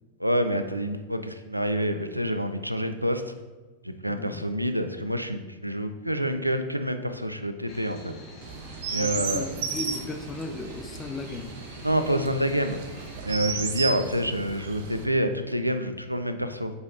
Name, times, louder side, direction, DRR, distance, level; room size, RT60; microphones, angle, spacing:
voice 1, 0.2-3.2 3.8-8.1 8.9-9.5 11.8-12.8 13.2-16.7, equal, 90° right, 8 dB, 0.4 m, -27 dB
voice 2, 4.1-4.4 9.0-11.5, left 3 dB, 20° left, 6 dB, 0.6 m, -36 dB
sound 1, 7.7-13.5, left 2 dB, 35° left, 1.4 m, -47 dB
Chirp tweet, 8.4-15.0, right 6 dB, 55° right, 0.7 m, -35 dB
8.0 x 5.1 x 2.6 m, 1.2 s
figure-of-eight pair, 90°, 0 cm